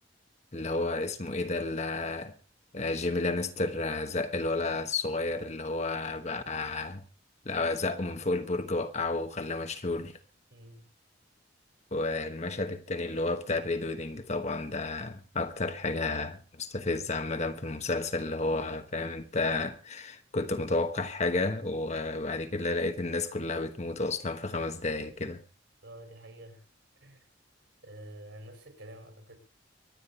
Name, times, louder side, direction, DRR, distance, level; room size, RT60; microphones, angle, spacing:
voice 1, 0.5-2.3 2.7-7.0 7.4-10.1 11.9-25.4, left 3 dB, 35° left, 1.2 m, -31 dB
voice 2, 10.5-10.9 25.8-26.7 27.0-27.3 27.8-29.4, right 1 dB, 65° right, 5.1 m, -48 dB
24.5 x 9.7 x 4.1 m
head